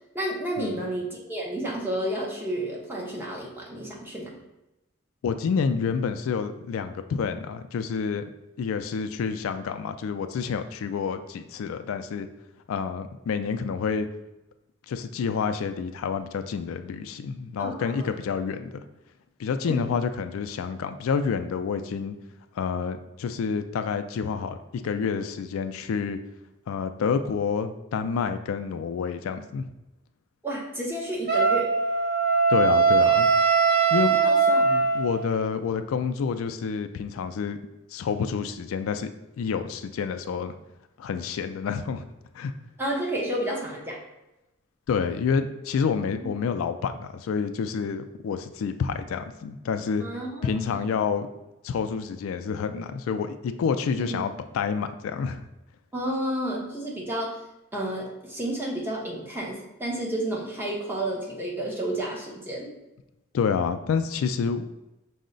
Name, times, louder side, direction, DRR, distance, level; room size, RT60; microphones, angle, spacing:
voice 1, 0.1-4.3 17.6-18.1 19.6-19.9 30.4-31.7 34.1-34.6 42.8-44.0 46.2-46.3 50.0-50.5 50.8-50.9 54.0-54.2 55.9-57.4 57.7-62.7, right 1 dB, 10° right, -3 dB, 0.7 m, -31 dB
voice 2, 5.2-8.2 8.6-12.3 12.7-14.1 14.9-18.8 19.4-22.2 22.6-24.6 24.8-26.2 26.7-29.7 32.5-33.3 33.9-34.2 34.6-37.6 37.9-39.1 39.4-40.5 41.0-42.0 42.3-42.5 44.9-50.0 50.4-51.3 51.6-55.4 63.3-64.7, left 6 dB, 85° left, 9 dB, 0.3 m, -28 dB
Wind instrument woodwind instrument, 31.3-35.3, right 5 dB, 45° right, 0.7 m, -21 dB
5.3 x 2.1 x 3.8 m, 0.94 s
head